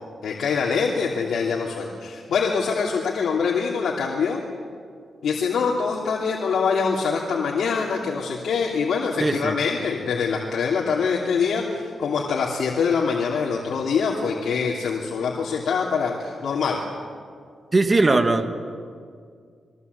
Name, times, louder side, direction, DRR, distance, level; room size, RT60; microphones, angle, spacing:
voice 1, 0.2-4.4 5.2-16.8, left 5 dB, 80° left, -3 dB, 2.9 m, -24 dB
voice 2, 9.2-9.6 17.7-18.5, right 2 dB, 25° right, 8 dB, 1.5 m, -19 dB
28.5 x 22.0 x 8.3 m, 2.1 s
wide cardioid pair, 155°, 0 cm